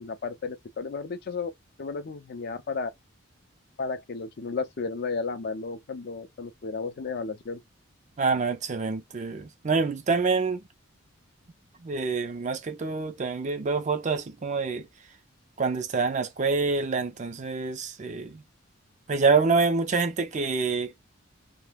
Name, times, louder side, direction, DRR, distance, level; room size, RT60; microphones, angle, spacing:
voice 1, 0.0-1.5 1.8-2.9 3.8-7.6, left 4 dB, 50° left, 0.5 m, -33 dB
voice 2, 8.2-10.6 11.8-14.9 15.6-18.4 19.1-20.9, right 4 dB, 35° right, 0.4 m, -26 dB
2.3 x 2.1 x 3.3 m
head